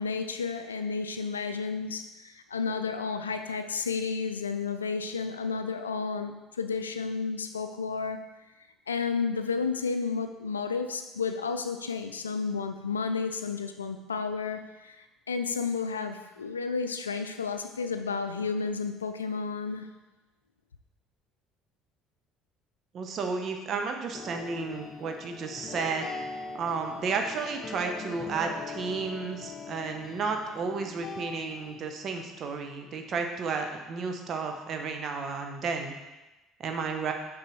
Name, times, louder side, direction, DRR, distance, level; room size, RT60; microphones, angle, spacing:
voice 1, 0.0-8.2 8.9-19.9, left 5 dB, 85° left, 8 dB, 0.4 m, -32 dB
voice 2, 22.9-26.1 26.6-36.0 36.6-37.1, right 4 dB, 50° right, 4 dB, 0.9 m, -32 dB
sound 1, 24.1-31.7, left 4 dB, 45° left, 0.8 m, -41 dB
6.6 x 5.2 x 3.2 m, 1.1 s
figure-of-eight pair, 60°, 0 cm